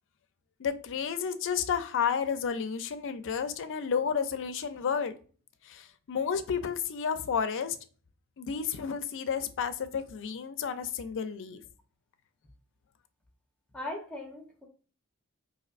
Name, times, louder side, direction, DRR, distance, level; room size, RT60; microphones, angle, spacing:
voice 1, 0.6-5.2 5.6-7.8 8.4-11.6, left 7 dB, 55° left, 10 dB, 0.4 m, -31 dB
voice 2, 13.7-14.7, left 2 dB, 5° left, 0 dB, 0.9 m, -39 dB
4.1 x 2.6 x 2.4 m, 0.40 s
head